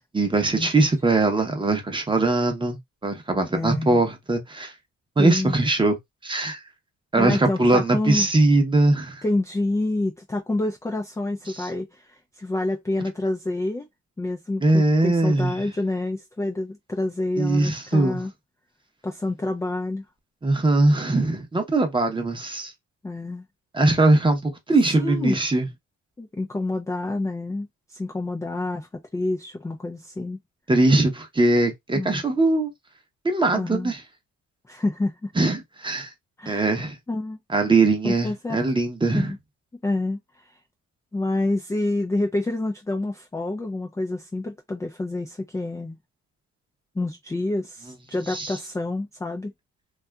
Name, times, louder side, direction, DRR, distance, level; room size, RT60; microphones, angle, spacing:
voice 1, 0.0-4.7 5.2-6.0 6.2-6.6 7.1-9.2 11.5-11.7 14.6-15.7 17.4-18.2 20.4-22.7 23.7-25.7 30.7-32.7 33.2-34.0 35.4-36.1 36.5-37.0 37.5-39.3 48.3-48.6, right 2 dB, 15° right, 0.7 m, -21 dB
voice 2, 0.6-0.9 3.5-4.0 5.2-5.6 7.1-8.3 9.2-13.9 14.2-18.3 19.0-20.0 23.0-23.4 25.0-25.4 26.2-30.4 31.9-32.3 33.5-33.9 34.7-35.3 36.4-36.8 37.1-37.4 38.0-38.6 39.1-39.4 39.8-40.5 41.1-46.0 47.0-49.5, left 2 dB, 10° left, 0.4 m, -28 dB
2.6 x 2.4 x 2.2 m
cardioid pair, 90°, 30 cm